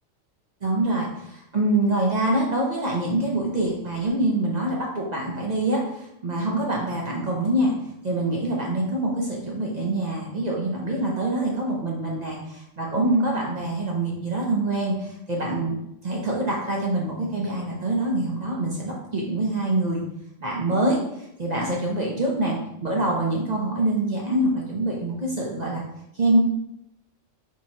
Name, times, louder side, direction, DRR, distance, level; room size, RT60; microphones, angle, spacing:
voice 1, 0.6-7.7 8.0-15.8 16.0-20.0 20.4-25.8 26.1-26.4, right 1 dB, 45° right, -3 dB, 0.6 m, -25 dB
4.5 x 2.8 x 2.8 m, 0.82 s
omnidirectional pair, 1.3 m